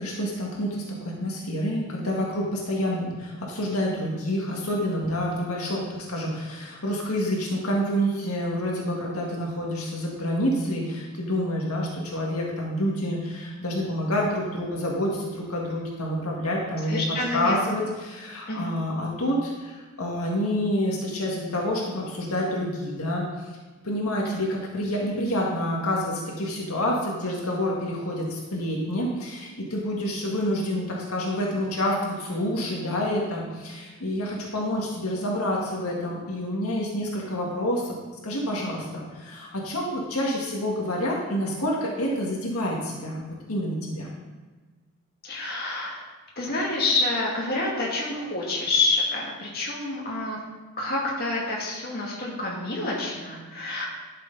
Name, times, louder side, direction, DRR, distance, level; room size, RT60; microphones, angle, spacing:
voice 1, 0.0-17.0 17.3-23.5 23.8-38.0 38.2-43.2 43.5-44.1, equal, 85° left, -2 dB, 1.8 m, -28 dB
voice 2, 16.9-17.7 18.5-18.7 24.2-24.3 45.2-46.0 46.4-50.4 50.8-53.9, left 2 dB, 45° left, -4 dB, 2.3 m, -28 dB
11.5 x 6.9 x 4.0 m, 1.3 s
head